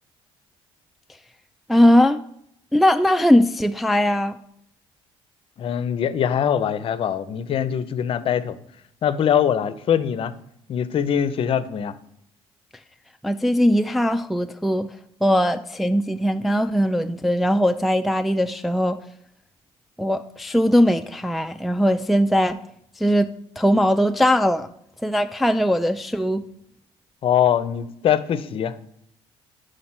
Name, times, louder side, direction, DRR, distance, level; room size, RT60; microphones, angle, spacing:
voice 1, 1.7-2.2 2.7-4.4 13.2-14.9 15.2-19.0 20.0-22.6 23.0-23.3 23.6-24.7 25.0-26.4, equal, ahead, 7 dB, 0.3 m, -20 dB
voice 2, 5.6-8.6 9.0-10.3 10.7-12.0 27.2-28.8, left 9 dB, 55° left, 15 dB, 0.5 m, -22 dB
5.1 x 4.2 x 5.8 m, 0.73 s
supercardioid pair, 75°, 12 cm